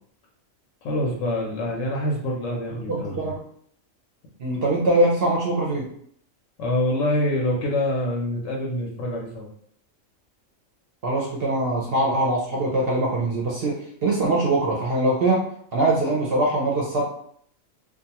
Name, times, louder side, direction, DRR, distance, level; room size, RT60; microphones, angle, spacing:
voice 1, 0.8-3.3 6.6-9.5, left 1 dB, 75° left, -1 dB, 0.9 m, -26 dB
voice 2, 2.9-3.4 4.4-5.9 11.0-13.7 14.0-15.4 15.7-17.1, right 2 dB, 60° right, -3 dB, 0.7 m, -22 dB
2.5 x 2.3 x 2.8 m, 0.64 s
omnidirectional pair, 1.4 m